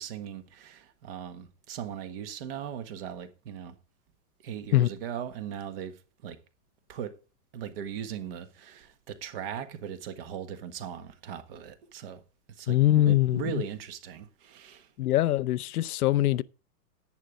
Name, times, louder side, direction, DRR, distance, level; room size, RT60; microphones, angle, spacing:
voice 1, 0.0-3.7 4.4-6.0 6.2-6.4 6.9-7.1 7.5-12.2 12.6-12.8 13.0-14.9, right 8 dB, 35° right, 1.4 m, -38 dB
voice 2, 12.7-13.6 15.0-16.4, left 14 dB, 65° left, 0.7 m, -23 dB
10.5 x 9.4 x 3.7 m
supercardioid pair, 175°, 47 cm